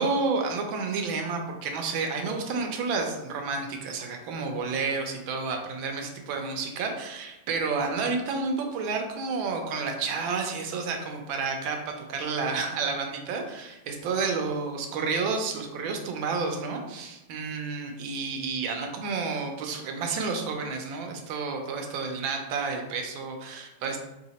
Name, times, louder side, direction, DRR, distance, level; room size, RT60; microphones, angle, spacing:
voice 1, 0.0-24.0, right 4 dB, 85° right, 3 dB, 1.4 m, -30 dB
3.4 x 2.8 x 4.0 m, 0.97 s
omnidirectional pair, 2.1 m